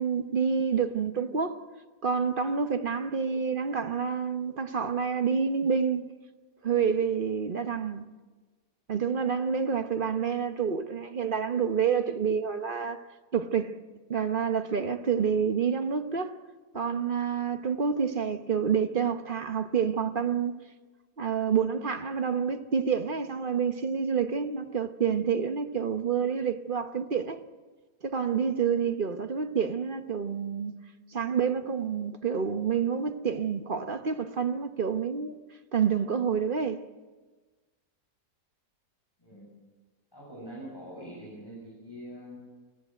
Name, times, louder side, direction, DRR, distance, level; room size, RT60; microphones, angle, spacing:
voice 1, 0.0-1.6 2.0-6.1 6.6-8.1 8.9-13.0 13.3-13.8 14.1-16.3 16.7-20.5 21.2-27.4 28.0-30.7 31.1-35.4 35.7-36.8, right 6 dB, 40° right, 1.0 m, -28 dB
voice 2, 39.2-39.5 40.1-42.4, equal, 15° left, 7.9 m, -44 dB
22.0 x 15.5 x 9.2 m
omnidirectional pair, 1.8 m